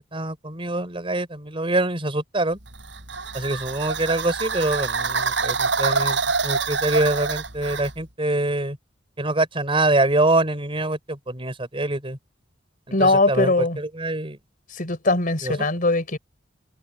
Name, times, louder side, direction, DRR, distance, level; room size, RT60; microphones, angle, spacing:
voice 1, 0.0-2.6 3.3-8.8 9.2-12.2 12.9-14.4 15.4-15.6, right 2 dB, 30° right, 4.6 m, -25 dB
sound 1, 2.7-8.0, right 4 dB, 70° right, 6.3 m, -26 dB
voice 2, 12.9-13.8 14.7-16.2, left 2 dB, 50° left, 4.0 m, -21 dB
head